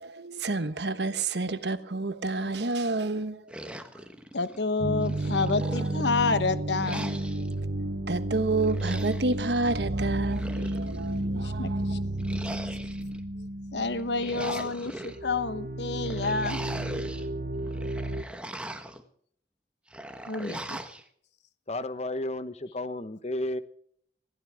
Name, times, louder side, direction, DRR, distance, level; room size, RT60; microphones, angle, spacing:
voice 1, 0.0-3.8 5.4-5.9 8.1-12.0, right 3 dB, 75° right, 1.2 m, -30 dB
sound 1, 3.5-4.6 5.0-6.3 6.8-7.6 8.6-9.4 10.1-11.1 12.2-13.2 13.9-15.2 16.0-17.3 17.7-19.0 19.9-21.0, right 1 dB, 5° right, 1.3 m, -40 dB
voice 2, 4.3-7.2 11.3-12.0 13.7-16.6 20.3-20.8, left 4 dB, 80° left, 1.1 m, -29 dB
sound 2, 4.8-14.7 15.0-18.2, right 1 dB, 50° right, 1.1 m, -32 dB
voice 3, 21.7-23.6, left 1 dB, 40° left, 1.0 m, -32 dB
20.5 x 15.5 x 3.6 m
head